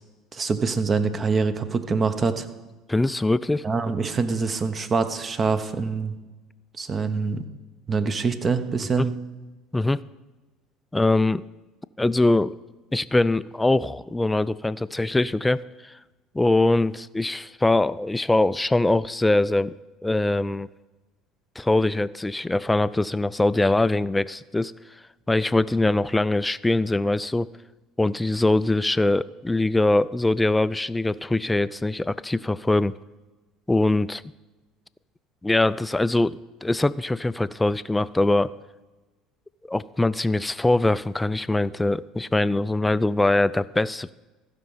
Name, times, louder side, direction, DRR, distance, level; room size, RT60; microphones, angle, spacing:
voice 1, 0.3-2.5 3.6-6.1 6.8-7.4 7.9-9.1, right 4 dB, 35° right, 10 dB, 1.0 m, -25 dB
voice 2, 2.9-3.6 9.0-9.1 9.7-10.0 10.9-11.4 12.0-12.6 12.9-15.9 16.3-19.7 20.0-20.7 21.6-24.7 25.3-27.5 28.0-32.9 33.7-34.2 35.4-38.5 39.7-44.1, left 2 dB, 10° left, 16 dB, 0.4 m, -22 dB
15.0 x 5.3 x 5.6 m, 1.2 s
hypercardioid pair, 75°, 0 cm